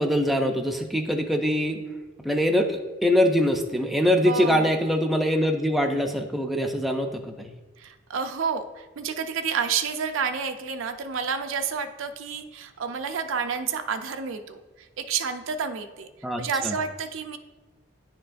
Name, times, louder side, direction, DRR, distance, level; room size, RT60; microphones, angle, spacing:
voice 1, 0.0-1.8 2.2-7.5 16.2-16.7, equal, ahead, 3 dB, 0.4 m, -23 dB
voice 2, 4.2-4.7 7.8-16.1 16.4-17.4, right 6 dB, 75° right, 8 dB, 0.4 m, -30 dB
10.0 x 4.4 x 2.5 m, 1.2 s
head